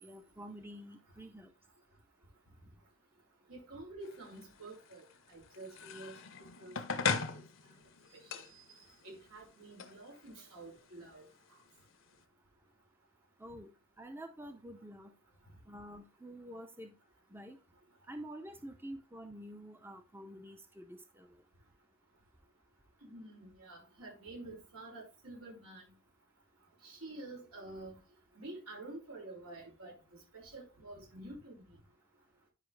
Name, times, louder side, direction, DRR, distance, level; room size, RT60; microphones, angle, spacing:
voice 1, 0.0-1.5 13.4-15.1 15.7-16.9 17.3-17.6 18.1-21.3, equal, 10° right, 0.7 m, -48 dB
voice 2, 3.5-5.0 5.3-6.1 6.6-6.8 7.0-7.7 8.2-11.3 23.0-25.8 26.8-28.0 28.4-29.9 30.3-31.8, right 2 dB, 90° right, 5.6 m, -49 dB
sound 1, 4.0-12.2, left 5 dB, 60° left, 0.9 m, -41 dB
10.5 x 5.4 x 3.3 m
head